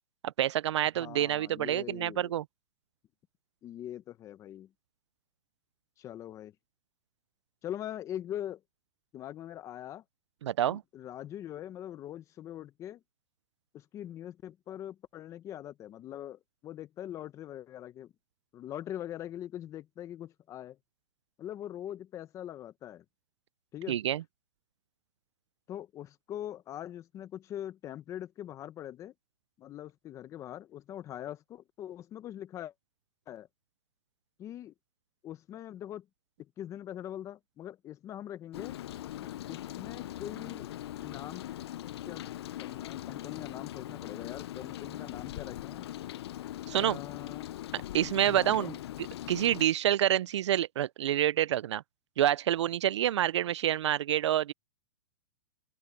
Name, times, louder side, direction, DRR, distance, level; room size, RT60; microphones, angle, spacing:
voice 1, 0.2-2.4 10.4-10.8 23.9-24.2 46.7-47.0 47.7-48.8 49.3-51.8 52.2-54.5, right 11 dB, 75° right, 0.5 m, -27 dB
voice 2, 1.0-2.3 3.6-4.7 6.0-6.5 7.6-8.6 9.1-10.0 10.7-13.0 13.7-18.1 18.5-20.8 21.4-23.0 23.7-24.0 25.7-29.1 29.6-32.7 33.3-33.5 34.4-34.7 35.2-36.1 36.4-38.8 39.5-40.7 41.0-41.4 42.0-42.3 42.6-45.9 46.7-47.5 48.2-48.7, left 11 dB, 20° left, 1.1 m, -42 dB
Rain, 38.5-49.7, left 13 dB, 60° left, 0.5 m, -41 dB
open air
hypercardioid pair, 150°, 15 cm